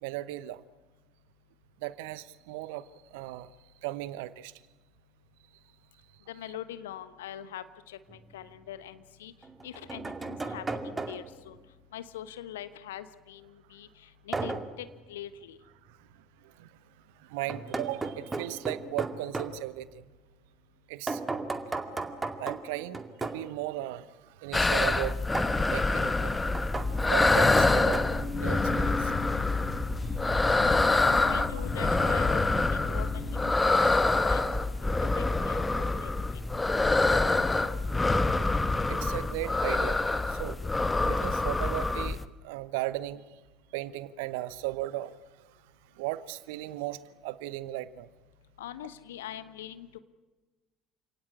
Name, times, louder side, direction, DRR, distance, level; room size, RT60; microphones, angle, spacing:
voice 1, 0.0-0.6 1.8-3.5 3.8-4.5 15.9-16.7 17.2-20.1 20.9-21.2 22.4-25.2 25.7-26.4 27.1-28.1 28.4-29.1 30.3-30.4 31.5-31.6 38.9-40.6 41.0-43.4 43.7-45.6 45.9-48.1, right 15 dB, 65° right, 17 dB, 0.9 m, -37 dB
voice 2, 6.3-11.6 11.9-15.6 30.9-36.2 48.6-50.0, left 11 dB, 70° left, 13 dB, 1.3 m, -43 dB
sound 1, 8.1-8.2 9.4-11.4 14.3-14.8 17.5-19.6 21.1-23.5 25.3-25.6 26.5-28.0, right 3 dB, 20° right, 2.3 m, -35 dB
sound 2, 24.5-42.2, left 2 dB, 15° left, 1.2 m, -26 dB
sound 3, 26.8-33.5, left 5 dB, 45° left, 2.3 m, -38 dB
28.5 x 18.0 x 8.5 m, 1.2 s
figure-of-eight pair, 60°, 0 cm